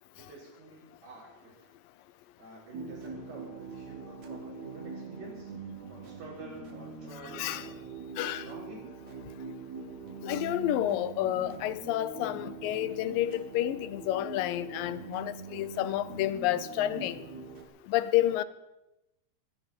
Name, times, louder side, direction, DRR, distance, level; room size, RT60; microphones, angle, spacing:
voice 1, 0.2-1.7 2.4-5.5 5.9-7.9 8.4-9.0, right 2 dB, 80° right, 6.8 m, -48 dB
sound 1, 2.7-17.6, right 4 dB, 60° right, 2.7 m, -43 dB
voice 2, 10.2-17.2 17.9-18.4, left 13 dB, 85° left, 2.4 m, -30 dB
26.5 x 11.0 x 4.4 m
omnidirectional pair, 3.9 m